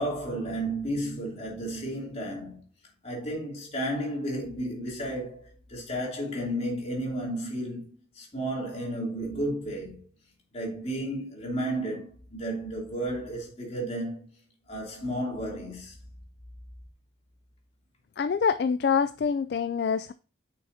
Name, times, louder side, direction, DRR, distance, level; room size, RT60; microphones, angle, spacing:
voice 1, 0.0-2.6 3.0-10.0 10.5-14.3 14.7-16.0, right 1 dB, 35° left, 3.0 m, -33 dB
voice 2, 18.2-20.1, left 6 dB, 60° left, 0.3 m, -25 dB
8.9 x 6.1 x 2.8 m
head